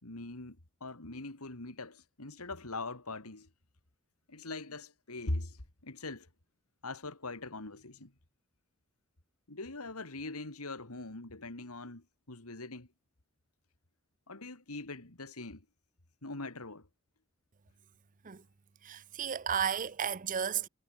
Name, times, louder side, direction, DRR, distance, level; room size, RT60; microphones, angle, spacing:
voice 1, 0.0-3.5 4.3-6.3 6.8-8.1 9.5-12.9 14.3-15.6 16.2-16.9, left 2 dB, 85° left, 2.8 m, -42 dB
voice 2, 18.8-20.7, right 8 dB, 35° right, 0.6 m, -33 dB
head